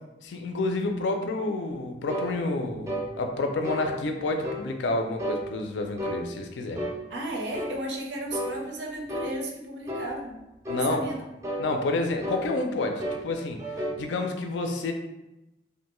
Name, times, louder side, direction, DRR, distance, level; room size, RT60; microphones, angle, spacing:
voice 1, 0.2-6.8 10.7-11.0 11.6-13.6 14.0-14.9, left 2 dB, 85° left, 5 dB, 0.4 m, -29 dB
sound 1, 2.1-2.3 2.9-3.1 3.6-3.9 4.4-4.7 5.2-5.4 6.0-6.2 6.7-7.0 7.5-7.8 8.3-8.5 9.1-9.4 9.9-10.1 10.6-10.9 11.4-11.7 12.2-12.5 13.0-13.3 13.6-14.0, equal, 15° right, 0.3 m, -32 dB
voice 2, 7.1-10.4 10.7-11.2, right 1 dB, 75° right, 0 dB, 0.5 m, -34 dB
2.5 x 2.2 x 2.9 m, 0.95 s
head